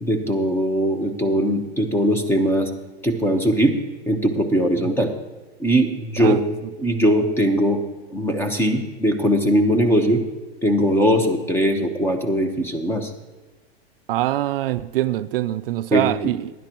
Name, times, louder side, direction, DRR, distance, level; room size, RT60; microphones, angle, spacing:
voice 1, 0.0-2.7 3.0-3.8 4.1-5.1 5.6-6.4 6.8-7.8 8.1-10.2 10.6-13.1 15.9-16.1, equal, 5° left, 0.9 m, -20 dB
voice 2, 14.1-16.5, right 15 dB, 60° right, 0.4 m, -24 dB
16.0 x 11.0 x 3.0 m
hypercardioid pair, 140°, 32 cm